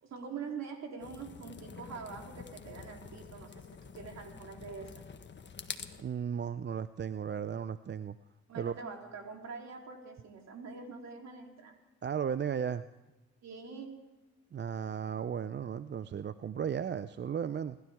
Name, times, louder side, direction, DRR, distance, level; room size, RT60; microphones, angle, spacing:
voice 1, 0.0-5.0 8.5-11.8 13.4-13.9, right 5 dB, 60° right, 2 dB, 3.4 m, -44 dB
sound 1, 1.0-6.0, left 5 dB, 35° left, 1.5 m, -47 dB
voice 2, 6.0-8.2 8.5-8.8 12.0-12.9 14.5-17.8, right 8 dB, 35° right, 14 dB, 0.5 m, -35 dB
29.0 x 12.5 x 3.6 m, 1.1 s
supercardioid pair, 55°, 30 cm